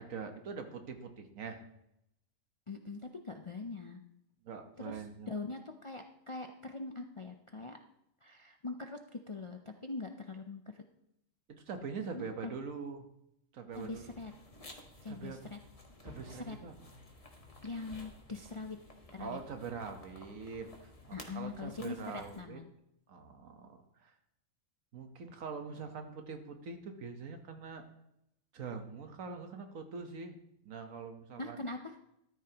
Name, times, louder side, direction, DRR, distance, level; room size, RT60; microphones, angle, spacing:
voice 1, 0.0-1.6 4.4-5.3 11.5-13.1 13.5-14.1 15.1-15.5 16.0-16.9 19.2-22.6 23.1-24.1 24.9-27.9 28.5-30.4 30.6-31.6, right 5 dB, 85° right, 6 dB, 1.5 m, -43 dB
voice 2, 2.7-4.0 4.8-5.0 5.3-7.8 8.2-10.8 12.1-12.5 13.7-14.3 15.0-15.6 16.3-16.6 17.6-18.8 19.1-19.4 21.1-22.7 31.4-31.9, left 3 dB, 45° left, 4 dB, 0.4 m, -42 dB
sound 1, 13.7-22.4, left 2 dB, 30° left, 1.3 m, -54 dB
13.0 x 11.0 x 2.9 m, 0.81 s
omnidirectional pair, 1.4 m